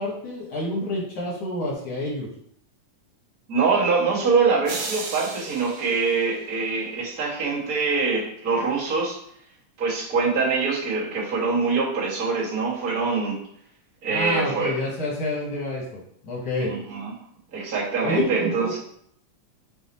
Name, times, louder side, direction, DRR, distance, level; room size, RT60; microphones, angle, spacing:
voice 1, 0.0-2.3 14.1-16.7 18.0-18.7, left 1 dB, 70° left, -5 dB, 0.9 m, -28 dB
voice 2, 3.5-9.2 9.8-13.4 14.0-14.8 16.6-17.1 17.5-18.8, right 4 dB, 45° right, -7 dB, 1.1 m, -24 dB
sound 1, 4.7-7.0, right 4 dB, 70° right, 2.1 m, -35 dB
5.5 x 2.1 x 4.1 m, 0.67 s
omnidirectional pair, 3.5 m